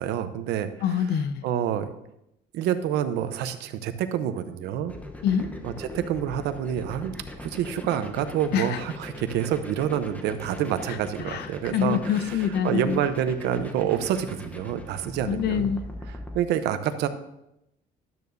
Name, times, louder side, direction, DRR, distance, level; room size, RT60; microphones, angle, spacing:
voice 1, 0.0-0.7 1.4-1.9 2.5-4.9 5.6-7.1 7.4-12.4 12.6-15.7 16.3-17.1, right 10 dB, 85° right, 10 dB, 0.8 m, -27 dB
voice 2, 0.8-1.4 5.2-5.5 8.5-8.8 11.3-13.0 15.3-15.8, left 8 dB, 75° left, 12 dB, 0.7 m, -25 dB
sound 1, 4.9-16.4, left 1 dB, 10° left, 0.9 m, -40 dB
12.0 x 9.4 x 2.7 m, 0.86 s
cardioid pair, 110°, 17 cm